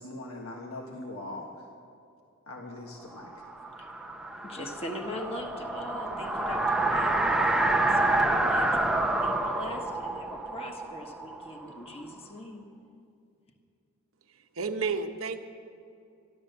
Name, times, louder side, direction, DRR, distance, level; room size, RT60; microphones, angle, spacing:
voice 1, 0.0-1.5 2.5-3.5, left 2 dB, 85° left, 0 dB, 1.6 m, -41 dB
sound 1, 3.2-12.0, right 2 dB, 5° right, 0.7 m, -28 dB
voice 2, 4.4-12.7, left 1 dB, 30° left, 2 dB, 1.3 m, -41 dB
voice 3, 14.3-15.4, right 4 dB, 70° right, 6 dB, 0.9 m, -32 dB
14.0 x 12.0 x 6.8 m, 2.6 s
head